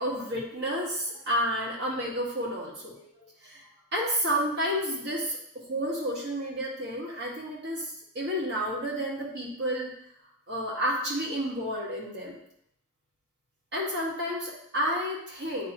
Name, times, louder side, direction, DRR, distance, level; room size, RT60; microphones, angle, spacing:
voice 1, 0.0-3.6 3.9-5.4 5.7-9.9 10.5-12.4 13.7-15.7, equal, 50° right, -5 dB, 1.7 m, -30 dB
10.0 x 3.4 x 3.0 m, 0.71 s
head